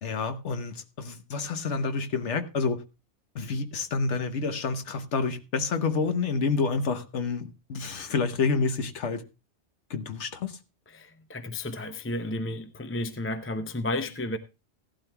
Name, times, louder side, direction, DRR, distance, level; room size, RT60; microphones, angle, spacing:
voice 1, 0.0-2.8 3.3-9.2 9.9-10.6, left 4 dB, 70° left, 1.3 m, -28 dB
voice 2, 10.9-14.4, left 1 dB, 15° left, 0.5 m, -32 dB
17.0 x 11.5 x 2.3 m
omnidirectional pair, 1.2 m